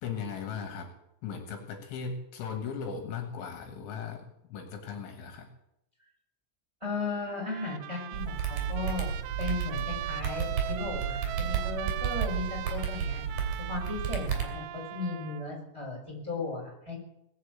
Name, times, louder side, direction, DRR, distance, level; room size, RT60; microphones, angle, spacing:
voice 1, 0.0-0.9 1.2-5.5, left 6 dB, 70° left, 5 dB, 3.6 m, -38 dB
voice 2, 6.8-9.1 9.4-13.2 13.7-17.0, left 3 dB, 5° right, -2 dB, 4.4 m, -36 dB
Trumpet, 7.3-15.5, right 13 dB, 90° right, 3.4 m, -40 dB
sound 1, 8.1-14.4, right 7 dB, 45° right, 3.9 m, -32 dB
20.5 x 7.6 x 8.0 m, 0.84 s
omnidirectional pair, 5.9 m